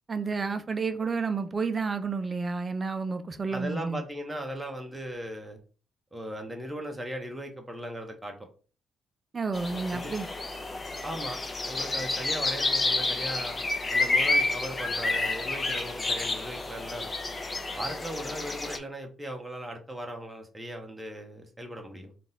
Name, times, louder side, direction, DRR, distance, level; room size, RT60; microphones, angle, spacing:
voice 1, 0.1-4.0 9.3-10.3, right 4 dB, 30° right, 0.5 m, -30 dB
voice 2, 3.5-5.6 6.1-8.4 9.9-10.1 11.0-11.4 11.7-13.6 13.9-17.1 17.8-22.1, equal, 10° right, 0.9 m, -38 dB
sound 1, 9.5-18.8, left 2 dB, 25° left, 0.7 m, -30 dB
3.8 x 2.5 x 4.0 m
cardioid pair, 90°, 0 cm